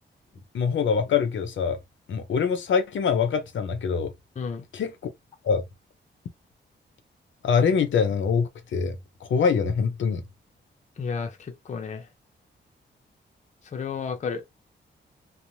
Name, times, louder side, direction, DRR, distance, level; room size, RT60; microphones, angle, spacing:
voice 1, 0.5-1.8 2.1-4.1 4.7-4.9 5.4-5.6 7.4-9.0 9.2-10.2, left 6 dB, 80° left, 0.6 m, -24 dB
voice 2, 11.0-12.1 13.7-14.5, left 5 dB, 40° left, 0.5 m, -32 dB
3.1 x 2.0 x 2.6 m
wide cardioid pair, 155°, 20 cm